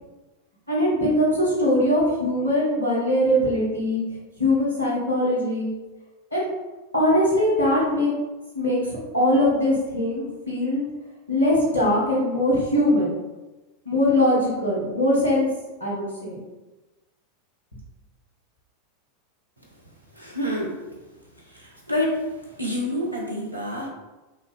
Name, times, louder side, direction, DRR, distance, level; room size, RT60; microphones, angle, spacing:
voice 1, 0.7-4.0 4.4-5.7 6.3-6.5 6.9-8.1 8.5-8.8 9.1-10.8 11.3-13.1 13.8-15.5 15.8-16.4, left 1 dB, 90° left, -7 dB, 1.3 m, -21 dB
voice 2, 20.2-20.8 21.5-22.2 22.6-23.9, left 1 dB, 90° right, -1 dB, 0.8 m, -27 dB
3.7 x 2.8 x 3.6 m, 1.1 s
figure-of-eight pair, 85°, 0 cm